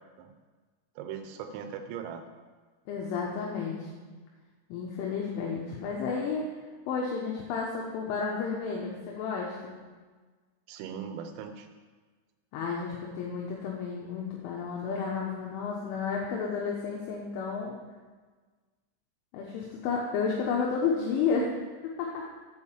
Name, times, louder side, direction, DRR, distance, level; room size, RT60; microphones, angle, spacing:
voice 1, 1.0-2.3 10.7-11.7, right 7 dB, 90° right, 6 dB, 3.5 m, -39 dB
voice 2, 2.9-4.0 4.7-6.5 6.9-9.7 12.5-17.7 19.3-21.5 22.0-22.2, left 5 dB, 80° left, -2 dB, 3.2 m, -31 dB
8.5 x 4.7 x 7.2 m, 1.4 s
omnidirectional pair, 5.8 m